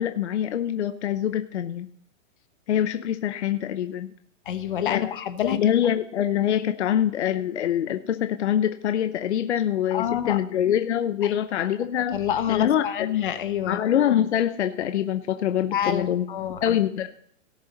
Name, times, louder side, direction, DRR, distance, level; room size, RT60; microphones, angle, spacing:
voice 1, 0.0-1.9 2.7-4.1 4.8-5.1 5.4-12.2 12.5-13.1 13.7-16.3 16.6-17.1, left 10 dB, 60° left, 8 dB, 0.8 m, -24 dB
voice 2, 4.5-5.6 9.9-10.4 11.2-11.3 12.1-13.8 15.7-16.8, left 10 dB, 40° left, 10 dB, 1.1 m, -27 dB
18.0 x 6.8 x 4.0 m, 0.68 s
hypercardioid pair, 180°, 39 cm